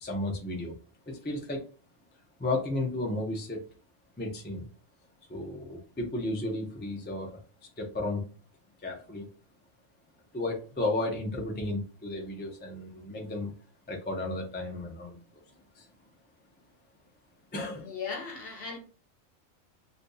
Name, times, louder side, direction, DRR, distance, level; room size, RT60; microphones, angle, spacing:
voice 1, 0.0-0.8 1.1-1.7 2.4-3.6 4.2-4.7 5.3-7.4 7.8-8.2 8.8-9.3 10.3-13.5 13.9-15.2 15.8-15.9 17.5-17.9, left 2 dB, 15° left, 0.4 m, -33 dB
voice 2, 17.8-18.8, left 5 dB, 50° left, 0.9 m, -37 dB
2.7 x 2.6 x 3.8 m
omnidirectional pair, 1.4 m